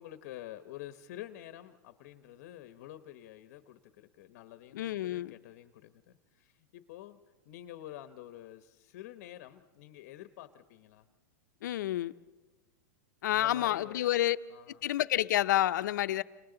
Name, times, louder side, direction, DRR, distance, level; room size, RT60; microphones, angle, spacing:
voice 1, 0.0-7.2 7.4-11.1 13.3-14.8, left 13 dB, 55° left, 0.9 m, -48 dB
voice 2, 4.7-5.3 11.6-12.1 13.2-14.4 14.8-16.2, left 13 dB, 75° left, 0.7 m, -29 dB
29.5 x 26.5 x 3.9 m
supercardioid pair, 150°, 10 cm